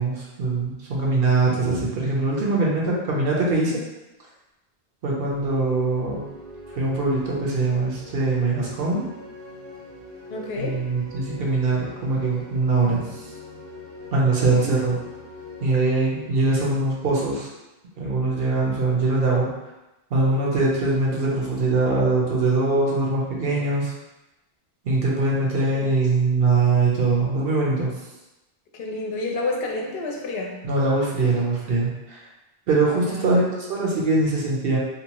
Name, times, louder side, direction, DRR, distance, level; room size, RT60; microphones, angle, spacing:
voice 1, 0.0-3.8 5.0-6.2 6.8-9.0 10.6-13.2 14.1-15.0 15.6-17.5 18.0-19.5 20.1-23.9 24.8-27.9 30.6-32.2 32.7-34.8, right 3 dB, 70° right, -3 dB, 0.9 m, -22 dB
sound 1, 5.0-17.7, left 1 dB, 55° right, 0.5 m, -42 dB
voice 2, 10.3-10.8 14.4-14.7 25.7-25.9 28.7-30.6 33.0-33.3, left 2 dB, 70° left, 0 dB, 0.8 m, -30 dB
2.7 x 2.2 x 2.9 m, 1.0 s
omnidirectional pair, 1.0 m